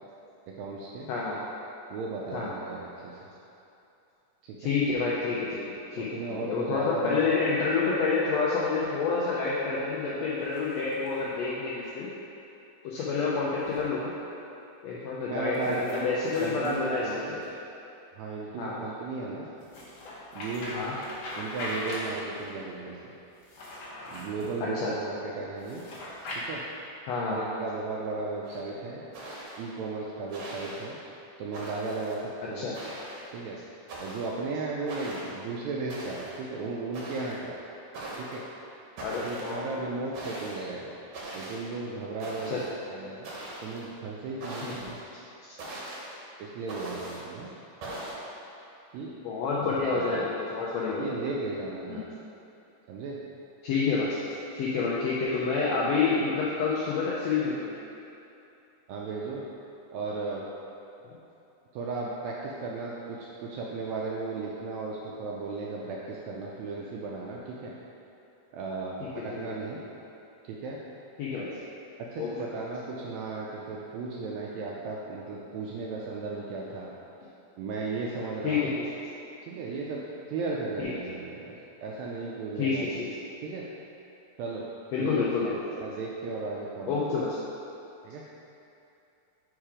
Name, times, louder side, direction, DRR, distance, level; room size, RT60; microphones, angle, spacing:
voice 1, 0.5-1.1 1.9-3.3 4.4-4.7 5.9-7.3 15.3-17.4 18.2-19.5 20.3-20.7 21.4-23.1 24.1-25.8 26.5-26.6 27.2-29.1 29.6-31.0 31.4-32.7 33.3-33.6 34.0-37.6 38.2-38.4 39.2-40.9 41.3-43.3 43.6-45.0 46.4-47.5 48.9-49.1 49.9-50.3 50.9-52.0 52.9-53.2 58.9-59.4 59.9-60.5 61.7-67.7 68.5-69.8 70.4-70.8 72.1-76.9 77.6-78.8 79.5-81.6 81.8-82.9 83.4-83.6 84.4-84.6 85.0-85.5 85.8-87.0 88.0-88.2, right 3 dB, 80° right, -3 dB, 1.6 m, -35 dB
voice 2, 1.1-1.4 2.3-2.5 4.6-5.6 5.9-6.1 6.4-12.1 12.8-14.1 14.8-17.4 18.6-18.8 20.7-20.9 24.8-24.9 27.1-27.4 32.5-32.8 39.0-39.6 42.5-42.6 44.6-44.8 49.2-51.2 51.9-52.0 53.6-54.2 54.5-57.7 61.1-61.2 69.4-69.6 71.2-71.5 72.2-72.3 78.4-78.9 80.8-80.9 82.6-83.1 84.9-85.6 86.9-87.4, left 4 dB, 85° left, -6 dB, 1.5 m, -28 dB
sound 1, 10.3-11.3 13.6-13.9 15.5-17.5 19.6-22.5 23.3-24.6 25.6-26.4, left 1 dB, 60° left, 2.0 m, -41 dB
sound 2, 28.5-28.6 29.1-29.7 30.3-30.8 31.5-32.1 32.7-33.3 33.9-34.3 34.9-35.4 35.9-36.4 36.9-37.4 37.9-38.4 39.0-39.6 40.1-40.6 41.1-41.6 42.2-42.7 43.2-43.9 44.4-44.9 45.6-46.1 46.7-47.2 47.8-48.2, right 1 dB, 65° right, 1.8 m, -40 dB
4.7 x 4.5 x 4.9 m, 2.8 s
omnidirectional pair, 3.6 m